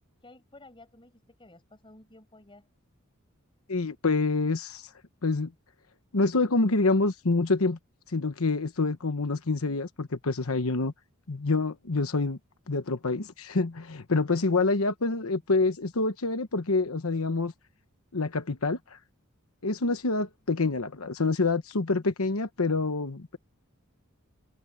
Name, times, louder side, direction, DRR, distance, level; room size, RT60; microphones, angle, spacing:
voice 1, 0.2-2.7 15.0-15.5, left 2 dB, 25° left, 6.3 m, -54 dB
voice 2, 3.7-4.9 5.2-5.5 6.1-7.8 8.1-10.9 11.3-12.4 12.7-17.5 18.1-19.0 19.6-23.4, left 3 dB, 85° left, 1.1 m, -27 dB
head